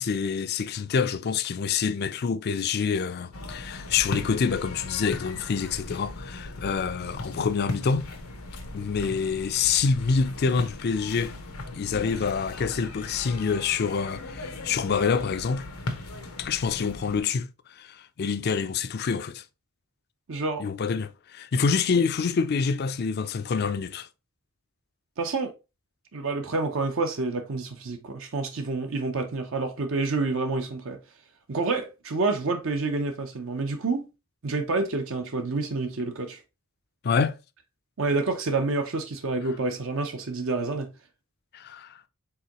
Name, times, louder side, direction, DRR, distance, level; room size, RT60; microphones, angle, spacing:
voice 1, 0.0-8.1 8.7-11.4 11.7-15.7 16.4-19.4 20.6-24.1 37.0-37.4 41.5-42.0, left 5 dB, 50° left, 0.4 m, -27 dB
sound 1, 3.3-17.2, left 2 dB, 90° left, 0.9 m, -38 dB
voice 2, 20.3-20.6 25.2-25.5 26.1-31.0 31.5-34.1 34.4-36.4 38.0-40.9, right 3 dB, 65° right, 0.7 m, -28 dB
4.7 x 3.6 x 2.9 m
head